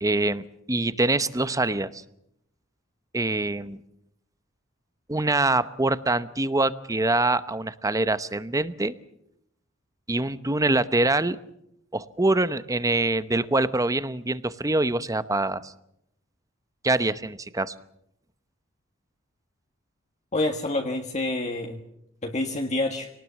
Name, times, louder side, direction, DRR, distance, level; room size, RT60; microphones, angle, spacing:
voice 1, 0.0-2.0 3.1-3.8 5.1-8.9 10.1-11.4 11.9-15.7 16.8-17.7, right 2 dB, 15° right, 14 dB, 0.9 m, -24 dB
voice 2, 20.3-21.8 22.2-23.1, left 2 dB, 35° left, 2 dB, 1.7 m, -27 dB
25.0 x 19.0 x 7.3 m, 0.77 s
head